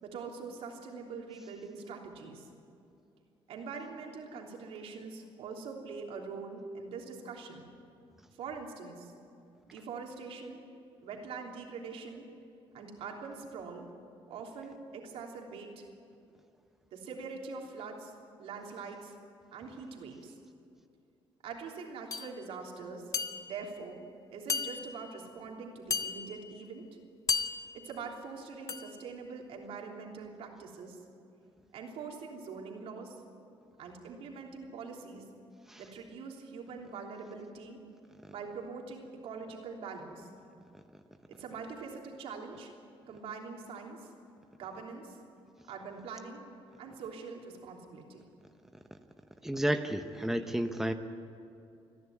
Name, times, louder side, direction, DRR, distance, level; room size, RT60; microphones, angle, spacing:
voice 1, 0.0-2.5 3.5-7.7 8.4-9.1 9.7-10.6 11.0-12.3 12.7-13.9 14.3-15.9 16.9-18.1 18.4-19.2 19.5-20.4 21.4-23.1 23.4-24.0 24.3-26.9 27.7-31.0 31.7-33.2 33.8-35.3 35.8-37.8 38.3-40.3 41.3-42.7 43.1-44.1 44.6-45.2 45.7-46.5 46.8-48.3, right 5 dB, 80° right, 0 dB, 3.3 m, -43 dB
sound 1, 22.1-22.3 23.1-23.7 24.5-25.1 25.9-26.5 27.3-27.9 28.7-29.0, left 5 dB, 35° left, 1.1 m, -34 dB
voice 2, 49.4-50.9, right 1 dB, 5° right, 7 dB, 0.9 m, -31 dB
28.5 x 11.0 x 9.6 m, 2.6 s
cardioid pair, 110°, 10 cm